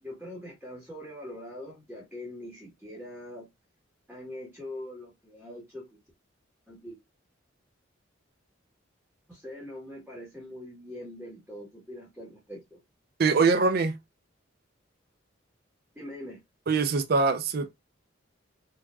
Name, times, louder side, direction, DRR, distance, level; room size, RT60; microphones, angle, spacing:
voice 1, 0.0-3.5 4.1-6.0 6.7-7.0 9.3-12.8 15.9-16.4, left 1 dB, 5° right, 1.4 m, -42 dB
voice 2, 13.2-13.9 16.7-17.7, right 4 dB, 50° right, 0.5 m, -23 dB
4.5 x 2.8 x 2.3 m
head